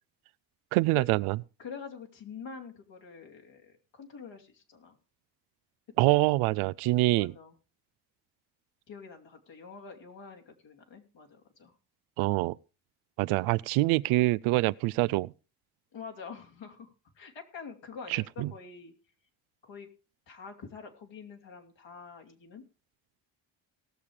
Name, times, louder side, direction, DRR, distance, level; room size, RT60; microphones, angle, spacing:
voice 1, 0.7-1.4 6.0-7.3 12.2-12.6 13.2-15.3 18.1-18.5, right 20 dB, 80° right, 0.6 m, -25 dB
voice 2, 1.6-5.0 6.1-6.2 7.1-7.6 8.9-11.7 15.9-18.9 19.6-19.9 20.3-22.6, left 5 dB, 60° left, 3.1 m, -46 dB
18.5 x 7.0 x 4.8 m
supercardioid pair, 60°, 49 cm